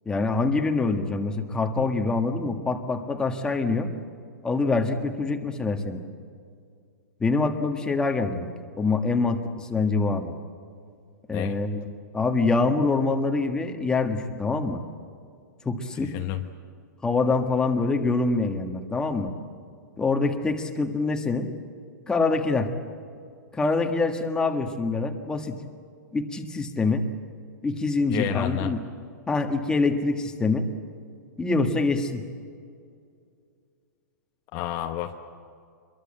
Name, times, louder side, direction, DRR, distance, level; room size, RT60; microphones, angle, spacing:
voice 1, 0.0-3.9 4.4-6.0 7.2-8.5 8.8-10.3 11.3-11.9 12.1-14.8 15.6-16.1 17.0-19.3 20.0-21.5 22.1-22.7 23.5-25.6 26.1-27.1 27.6-28.8 29.3-30.7 31.4-32.2, left 3 dB, 10° left, 4 dB, 1.5 m, -25 dB
voice 2, 16.0-16.4 28.1-28.7 34.5-35.1, left 13 dB, 35° left, 5 dB, 1.0 m, -30 dB
25.0 x 22.5 x 7.7 m, 2.3 s
hypercardioid pair, 150°, 10 cm